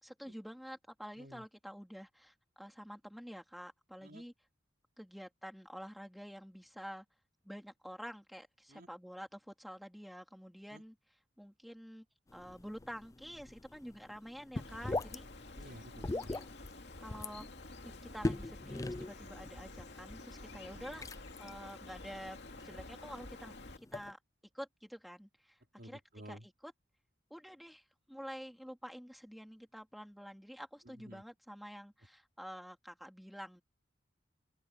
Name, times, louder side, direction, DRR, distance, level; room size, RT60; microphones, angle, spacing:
voice 1, 0.0-4.3 5.0-7.0 7.4-10.9 11.4-12.0 12.3-15.3 16.1-16.5 17.0-17.5 17.8-21.0 21.4-22.4 22.6-23.5 23.9-24.2 24.5-25.6 25.8-26.0 26.3-26.7 27.3-33.6, equal, ahead, 3.4 m, -48 dB
sound 1, 12.3-24.1, left 2 dB, 15° left, 0.4 m, -43 dB
Bird, 14.6-23.8, left 2 dB, 60° left, 2.6 m, -50 dB
voice 2, 15.6-16.4 20.7-21.0 25.8-26.5 30.8-31.2, equal, 50° right, 4.3 m, -53 dB
open air
head